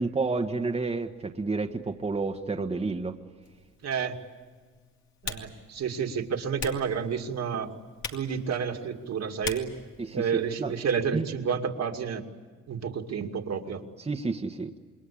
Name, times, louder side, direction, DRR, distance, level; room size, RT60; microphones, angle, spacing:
voice 1, 0.0-3.2 10.0-10.7 11.1-11.3 14.0-14.8, right 3 dB, 20° right, 3 dB, 1.4 m, -30 dB
Typing, 3.4-10.9, left 5 dB, 65° left, 2.9 m, -43 dB
voice 2, 3.8-4.1 5.2-7.7 8.1-9.7 10.1-12.2 12.7-13.8, right 6 dB, 60° right, 4 dB, 2.4 m, -30 dB
27.5 x 21.5 x 8.6 m, 1.5 s
cardioid pair, 90°, 30 cm